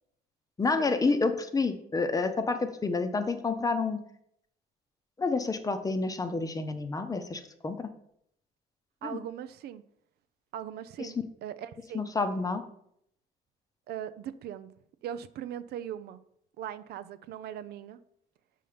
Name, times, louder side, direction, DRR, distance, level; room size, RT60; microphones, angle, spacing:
voice 1, 0.6-4.0 5.2-7.9 9.0-9.2 11.0-11.1 11.9-12.6, left 3 dB, 20° left, 9 dB, 0.8 m, -29 dB
voice 2, 9.0-9.8 10.5-12.1 13.9-16.2 16.6-18.0, right 10 dB, 70° right, 13 dB, 0.5 m, -40 dB
5.6 x 5.5 x 5.0 m, 0.71 s
cardioid pair, 110°, 17 cm